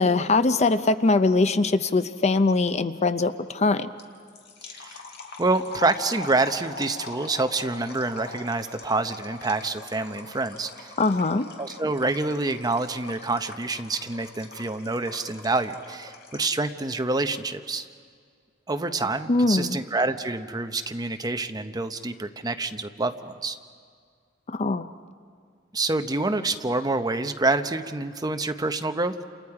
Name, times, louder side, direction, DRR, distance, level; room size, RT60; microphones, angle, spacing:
voice 1, 0.0-3.9 11.0-11.5 19.3-19.8 24.5-24.9, left 3 dB, 35° left, 11 dB, 0.6 m, -22 dB
sound 1, 4.0-16.6, left 3 dB, 60° left, 2.1 m, -42 dB
voice 2, 4.7-5.0 5.4-10.9 11.6-17.9 18.7-23.6 25.7-29.1, right 3 dB, 20° right, 8 dB, 0.8 m, -27 dB
29.0 x 28.0 x 4.8 m, 2.1 s
head